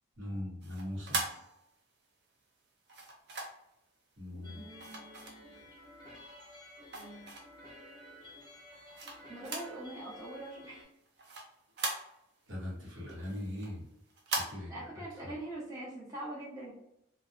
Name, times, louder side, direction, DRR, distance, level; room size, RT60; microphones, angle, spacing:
voice 1, 0.2-1.2 4.2-4.7 12.5-13.9 14.3-14.9 15.2-15.3, left 1 dB, 70° right, -4 dB, 0.9 m, -40 dB
sound 1, 0.6-2.0 2.9-3.7 4.8-5.8 6.3-7.7 8.2-9.8 10.1-10.2 10.6-12.5 12.9-14.5, right 3 dB, 55° right, 0.5 m, -40 dB
voice 2, 4.3-5.5 6.9-7.3 9.3-10.9 14.7-16.7, right 1 dB, 15° right, -8 dB, 0.7 m, -44 dB
sound 2, 4.4-10.8, left 1 dB, 20° left, 0.6 m, -53 dB
2.6 x 2.1 x 2.4 m, 0.79 s
head